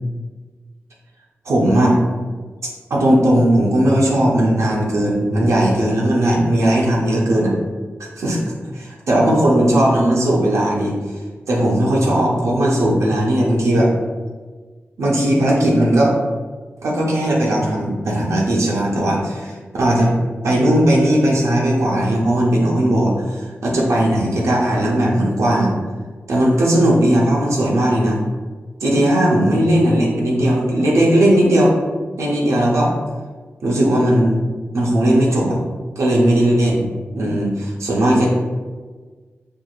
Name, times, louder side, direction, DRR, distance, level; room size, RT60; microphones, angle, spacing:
voice 1, 1.5-2.0 2.9-7.5 8.2-8.4 8.7-11.0 11.5-13.9 15.0-16.1 16.8-20.1 20.4-25.7 26.3-28.2 28.8-31.7 32.2-32.9 33.6-34.4 34.7-35.6 36.0-36.9 37.1-38.3, right 1 dB, 85° right, -4 dB, 0.7 m, -17 dB
4.4 x 2.5 x 2.4 m, 1.4 s
cardioid pair, 60°, 5 cm